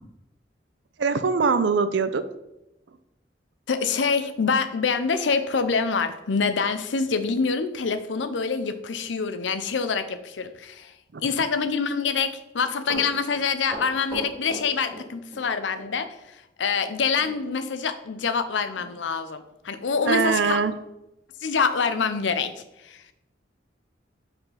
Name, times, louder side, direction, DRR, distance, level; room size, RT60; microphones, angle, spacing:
voice 1, 1.0-2.2 11.1-11.2 20.1-20.7, right 5 dB, 75° right, 12 dB, 0.5 m, -22 dB
voice 2, 3.7-10.9 11.2-20.6 21.4-22.5 22.8-23.0, left 5 dB, 90° left, 10 dB, 0.6 m, -26 dB
Run, 12.6-15.5 15.7-15.9 17.2-17.4 17.7-17.8 18.3-18.4 18.7-18.9 19.5-19.6, equal, 15° right, 2.6 m, -37 dB
5.5 x 4.3 x 5.5 m, 0.92 s
head